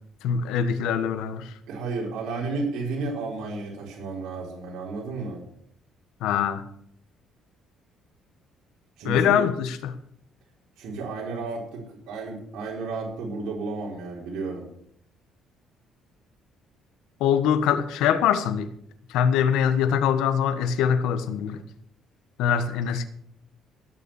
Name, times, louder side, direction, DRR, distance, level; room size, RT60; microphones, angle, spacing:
voice 1, 0.2-1.5 6.2-6.6 9.0-9.9 17.2-18.7 19.1-21.6 22.4-23.0, left 8 dB, 90° left, 11 dB, 1.4 m, -23 dB
voice 2, 1.7-5.4 9.0-9.5 10.8-14.7, right 3 dB, 75° right, -3 dB, 4.3 m, -32 dB
17.5 x 7.0 x 7.2 m, 0.67 s
cardioid pair, 140°, 0 cm